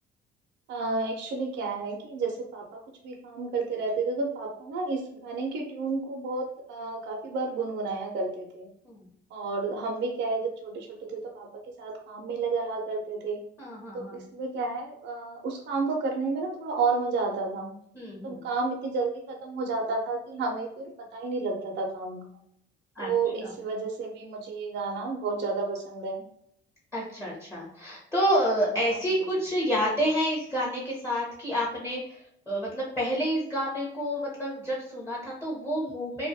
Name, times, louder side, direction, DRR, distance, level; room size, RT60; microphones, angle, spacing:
voice 1, 0.7-8.7 9.3-11.5 11.8-13.4 13.9-17.8 18.2-22.2 23.0-26.2 29.2-29.3, right 3 dB, 60° right, 0 dB, 0.6 m, -31 dB
voice 2, 13.6-14.2 17.9-18.4 23.0-23.1 23.4-23.5 26.9-36.3, equal, 15° left, -5 dB, 0.8 m, -29 dB
2.3 x 2.1 x 2.6 m, 0.70 s
cardioid pair, 85°, 21 cm